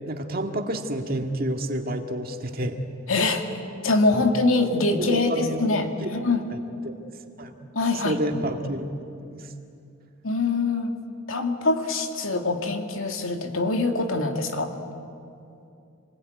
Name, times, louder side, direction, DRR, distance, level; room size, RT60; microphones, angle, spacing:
voice 1, 0.1-2.8 4.1-4.2 4.9-5.7 6.0-6.1 6.5-6.6 6.8-6.9 7.4-7.5 8.0-8.9 9.3-9.5, right 1 dB, 45° right, 4 dB, 1.9 m, -29 dB
voice 2, 3.1-3.4 3.8-6.5 7.7-8.2 10.2-10.9 11.3-14.7, left 3 dB, 85° left, 4 dB, 2.4 m, -24 dB
27.5 x 21.0 x 9.4 m, 2.6 s
head